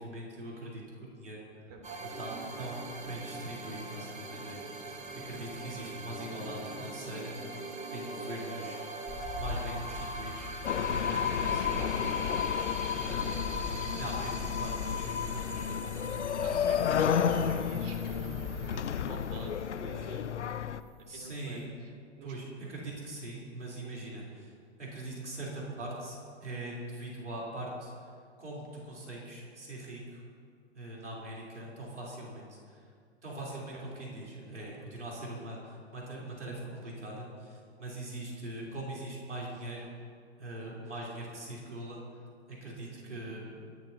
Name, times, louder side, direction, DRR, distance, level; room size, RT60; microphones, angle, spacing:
voice 1, 0.0-1.4 2.0-5.0 5.2-7.4 7.9-8.8 9.4-10.5 11.0-12.3 13.0-13.5 13.9-16.0 16.9-17.5 21.0-21.7 22.2-30.2 30.7-32.9 33.2-39.8 40.4-42.2 42.5-43.6, right 1 dB, 90° right, -5 dB, 3.9 m, -42 dB
voice 2, 1.7-2.0 11.1-11.5 12.8-13.0 16.3-20.3 21.1-22.3 33.7-33.9 38.6-38.7 43.0-43.2, right 2 dB, 50° right, 1 dB, 3.3 m, -47 dB
sound 1, 1.8-20.3, right 3 dB, 20° right, 1.7 m, -43 dB
sound 2, 9.1-18.8, left 3 dB, 25° left, 2.8 m, -43 dB
sound 3, 10.6-20.8, left 8 dB, 85° left, 0.6 m, -31 dB
23.0 x 12.5 x 2.9 m, 2.1 s
figure-of-eight pair, 110°, 34 cm